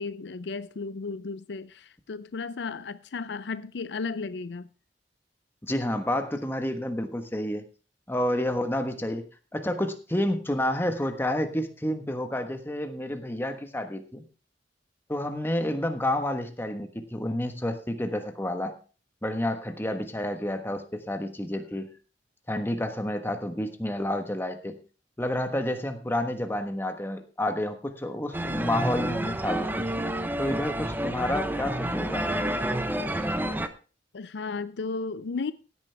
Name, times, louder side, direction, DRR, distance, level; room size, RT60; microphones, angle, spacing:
voice 1, 0.0-4.7 34.1-35.5, left 4 dB, 70° left, 0.5 m, -34 dB
voice 2, 5.6-7.6 8.1-9.2 9.5-14.2 15.1-18.7 19.2-21.9 22.5-24.8 25.2-29.9 30.4-32.4, left 1 dB, 15° left, 1.3 m, -29 dB
sound 1, 28.3-33.7, right 1 dB, 10° right, 0.8 m, -29 dB
16.0 x 9.4 x 3.4 m
head